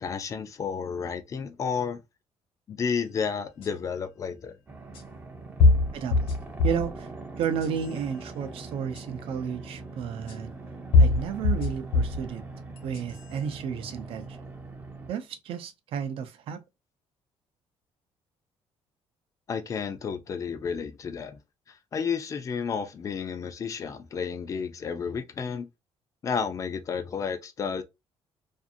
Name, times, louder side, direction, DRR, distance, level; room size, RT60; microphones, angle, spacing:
voice 1, 0.0-2.0 2.7-4.5 19.5-21.4 21.9-25.7 26.2-27.8, left 6 dB, 30° left, 0.4 m, -31 dB
sound 1, 3.6-3.7 4.9-5.0 5.6-6.9 7.4-8.0 8.9-9.0 10.3-10.4 10.9-12.2 12.8-13.3, left 3 dB, 70° left, 1.1 m, -22 dB
sound 2, 4.7-15.1, right 3 dB, 20° right, 0.5 m, -42 dB
voice 2, 5.9-6.3 6.6-7.1 7.4-10.5 11.0-12.4 12.8-14.4 15.1-16.6, right 7 dB, 65° right, 0.5 m, -32 dB
2.5 x 2.5 x 2.6 m
cardioid pair, 150°, 10 cm